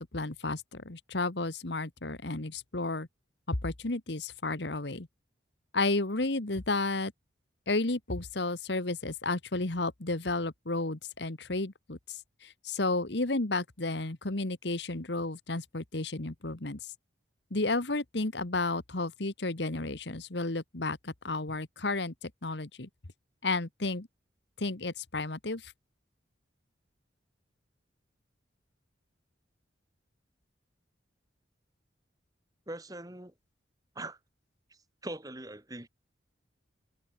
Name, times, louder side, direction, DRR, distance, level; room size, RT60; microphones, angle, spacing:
voice 1, 0.0-3.1 3.5-5.1 5.7-7.1 7.7-16.8 17.5-22.9 23.4-24.1 24.6-25.7, left 2 dB, 65° left, 1.6 m, -32 dB
voice 2, 32.7-33.3 34.0-34.2 35.0-35.9, right 1 dB, 20° right, 2.4 m, -41 dB
head